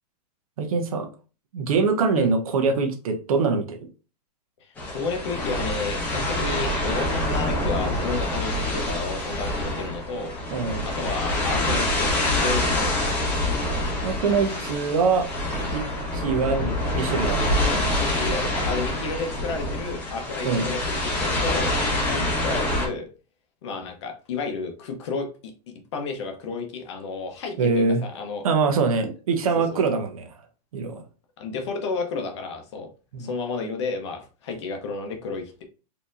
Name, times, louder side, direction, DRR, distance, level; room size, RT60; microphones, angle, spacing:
voice 1, 0.6-1.1 1.5-3.9 10.5-10.9 14.0-15.3 15.7-15.9 16.1-17.8 20.4-20.7 27.6-28.0 28.4-30.3 30.7-31.0 33.1-33.3, right 4 dB, 55° right, 0.8 m, -24 dB
sound 1, 4.8-22.9, left 1 dB, 10° left, 0.8 m, -26 dB
voice 2, 4.9-10.3 10.8-13.0 17.9-23.1 23.6-25.3 25.9-28.4 29.7-29.8 31.4-32.9 33.2-35.6, left 4 dB, 40° left, 0.8 m, -31 dB
4.3 x 2.8 x 2.5 m
hypercardioid pair, 165°, 21 cm